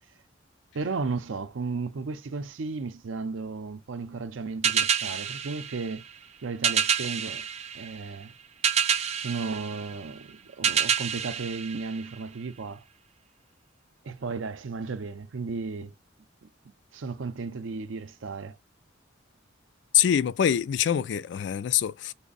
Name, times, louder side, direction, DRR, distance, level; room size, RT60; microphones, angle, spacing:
voice 1, 0.7-6.0 6.4-7.5 7.7-8.3 9.2-12.8 14.0-15.9 16.4-18.6, right 4 dB, 80° right, 0.5 m, -34 dB
sound 1, 4.6-12.5, right 7 dB, 35° right, 0.5 m, -29 dB
voice 2, 19.9-22.1, left 9 dB, 60° left, 0.3 m, -24 dB
3.4 x 2.0 x 3.9 m
head